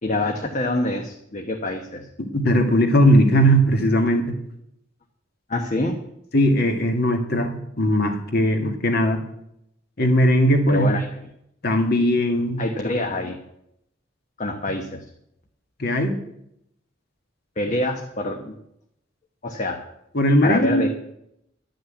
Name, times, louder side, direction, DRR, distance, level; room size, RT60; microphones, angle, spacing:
voice 1, 0.0-2.1 5.5-6.0 10.7-11.2 12.6-13.4 14.4-15.0 17.6-18.6 19.4-19.8 20.4-20.9, left 2 dB, 40° left, 3 dB, 1.1 m, -26 dB
voice 2, 2.2-4.2 6.3-9.2 10.0-10.9 11.6-12.6 15.8-16.1 20.1-20.9, equal, 55° left, 4 dB, 2.0 m, -19 dB
11.5 x 6.4 x 9.0 m, 0.78 s
head